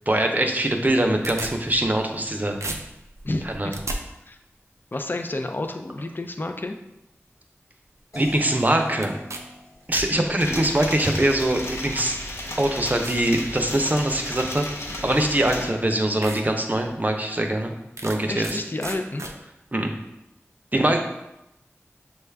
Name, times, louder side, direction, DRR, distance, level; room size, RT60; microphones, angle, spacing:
voice 1, 0.1-2.6 3.4-3.7 8.2-9.1 9.9-12.2 12.6-14.6 15.0-17.7 18.0-18.6 19.7-19.9 20.7-21.0, right 1 dB, 35° right, 4 dB, 0.6 m, -23 dB
sound 1, 0.8-2.3 2.6-4.0 9.0-9.4 9.7-10.7 11.6-11.7 12.3-12.4 13.0-13.3 13.8-14.1 15.3-15.4 15.8-15.9 16.2-16.4 16.9-17.0 18.0-18.6 18.8-19.3, right 2 dB, 85° right, 0.5 m, -34 dB
voice 2, 3.2-3.8 4.3-4.4 4.9-6.8 10.1-10.7 15.1-15.8 18.3-19.3, left 2 dB, 45° left, 5 dB, 0.5 m, -31 dB
sound 2, 8.1-11.2, left 1 dB, 80° left, 1.2 m, -44 dB
sound 3, 10.4-15.7, left 1 dB, 65° left, 0.8 m, -34 dB
6.3 x 2.3 x 3.3 m, 0.90 s
wide cardioid pair, 40°, 5 cm